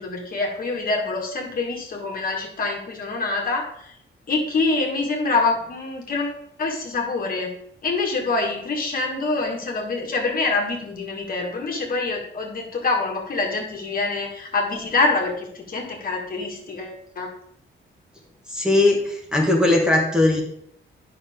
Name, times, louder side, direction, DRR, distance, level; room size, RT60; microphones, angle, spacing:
voice 1, 0.0-3.9 4.3-7.5 7.8-17.3, left 3 dB, 45° left, 1 dB, 1.7 m, -25 dB
voice 2, 18.5-20.4, left 2 dB, 5° right, -1 dB, 1.4 m, -19 dB
9.7 x 5.8 x 3.6 m, 0.70 s
wide cardioid pair, 155°, 20 cm